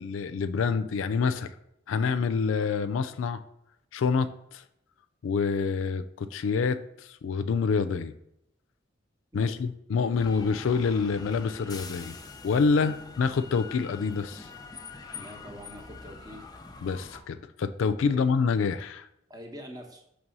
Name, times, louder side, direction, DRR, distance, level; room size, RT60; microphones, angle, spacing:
voice 1, 0.0-1.5 1.9-3.4 3.9-4.6 5.2-8.1 9.3-12.1 12.4-14.5 16.8-19.1, left 5 dB, 85° left, 11 dB, 0.4 m, -27 dB
sound 1, 10.2-17.2, left 4 dB, 20° left, 0.5 m, -44 dB
voice 2, 15.1-16.4 18.1-18.2 19.3-20.0, equal, 20° right, 3 dB, 1.0 m, -44 dB
6.0 x 3.3 x 5.3 m, 0.79 s
head